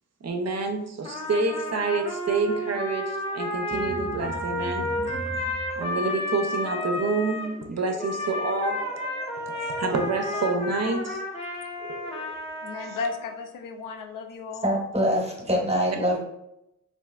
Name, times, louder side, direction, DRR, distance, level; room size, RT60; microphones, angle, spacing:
voice 1, 0.2-4.9 5.8-8.8 9.7-11.2 11.8-12.3, right 3 dB, 55° right, 4 dB, 0.5 m, -28 dB
Trumpet, 1.0-7.5 8.0-13.3, left 1 dB, 20° left, 0.8 m, -32 dB
sound 1, 3.7-10.6, equal, ahead, 0.3 m, -41 dB
voice 2, 12.5-14.7, left 4 dB, 90° left, 4 dB, 0.5 m, -34 dB
voice 3, 14.6-16.2, equal, 20° right, 0 dB, 0.9 m, -24 dB
3.2 x 2.6 x 2.3 m, 0.84 s
cardioid pair, 50°, 31 cm